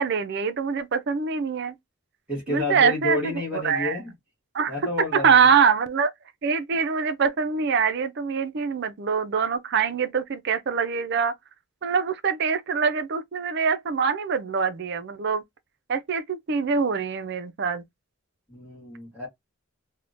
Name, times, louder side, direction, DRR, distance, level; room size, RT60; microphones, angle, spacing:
voice 1, 0.0-1.7 2.5-4.0 4.5-4.7 5.1-6.1 6.4-11.3 11.8-15.4 15.9-17.8, right 6 dB, 50° right, 0.4 m, -24 dB
voice 2, 2.3-4.1 4.7-5.5 18.5-19.3, left 2 dB, 5° right, 1.6 m, -30 dB
3.5 x 2.1 x 2.5 m
head